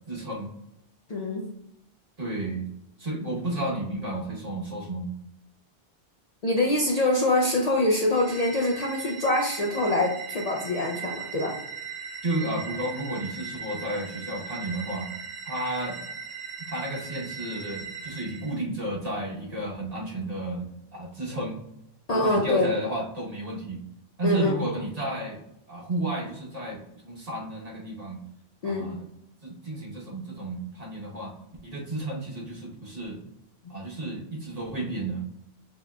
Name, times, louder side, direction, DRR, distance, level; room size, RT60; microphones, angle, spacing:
voice 1, 0.1-0.6 2.2-2.7 3.0-5.1 12.2-15.1 15.4-16.0 16.7-20.7 20.9-21.6 22.1-23.8 24.2-25.4 25.7-28.2 28.6-29.1 29.4-31.3 31.6-33.2 33.7-35.2, right 1 dB, 40° right, -3 dB, 1.1 m, -32 dB
voice 2, 1.1-1.5 6.4-11.5 22.1-22.7 24.2-24.6 28.6-28.9, left 1 dB, 45° left, -1 dB, 0.5 m, -24 dB
sound 1, 8.1-18.6, right 6 dB, 85° right, 0.9 m, -39 dB
7.0 x 3.0 x 2.3 m, 0.81 s
omnidirectional pair, 1.1 m